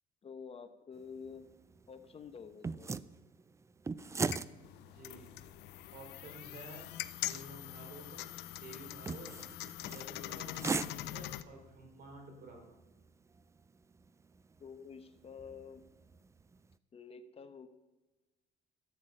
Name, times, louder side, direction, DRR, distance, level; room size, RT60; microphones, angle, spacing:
voice 1, 0.2-1.5 1.9-3.0 14.6-15.8 16.9-17.7, left 6 dB, 35° left, 10 dB, 0.9 m, -49 dB
sound 1, 0.9-16.7, right 4 dB, 15° right, 0.4 m, -44 dB
sound 2, 4.0-11.4, left 15 dB, 85° left, 0.5 m, -43 dB
voice 2, 4.7-5.3 5.9-9.3 9.9-10.5 10.9-12.7, right 2 dB, 60° right, 2 dB, 3.7 m, -52 dB
12.5 x 8.0 x 5.4 m, 1.1 s
cardioid pair, 110°, 17 cm